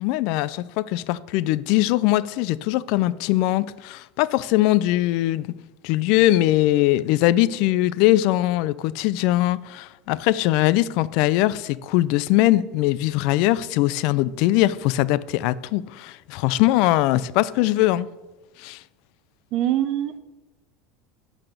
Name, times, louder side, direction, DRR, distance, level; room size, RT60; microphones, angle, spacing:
voice 1, 0.0-5.5 5.8-18.1 18.6-18.8, left 16 dB, 60° left, 0.4 m, -21 dB
voice 2, 19.5-20.2, right 12 dB, 50° right, 0.7 m, -23 dB
10.0 x 4.2 x 6.6 m
supercardioid pair, 135°, 0 cm